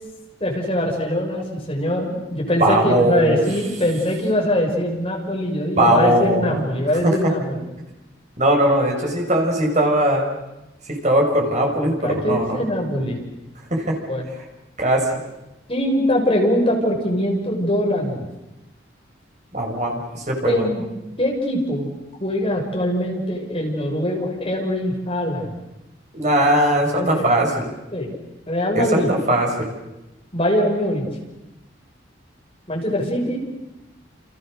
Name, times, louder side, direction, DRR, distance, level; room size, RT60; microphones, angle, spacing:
voice 1, 0.4-7.6 11.5-13.2 14.1-14.2 15.7-18.3 20.4-20.8 21.2-21.9 22.2-25.6 26.9-27.3 27.9-28.1 28.5-29.1 30.3-31.1 32.7-33.4, left 1 dB, 30° left, 0 dB, 6.7 m, -22 dB
voice 2, 2.6-3.4 5.7-6.6 7.0-7.3 8.4-10.3 10.9-12.6 13.7-14.0 14.8-15.1 19.5-20.7 26.1-27.7 28.7-29.5, right 1 dB, 40° right, 1 dB, 6.4 m, -19 dB
29.5 x 29.5 x 6.7 m, 0.99 s
head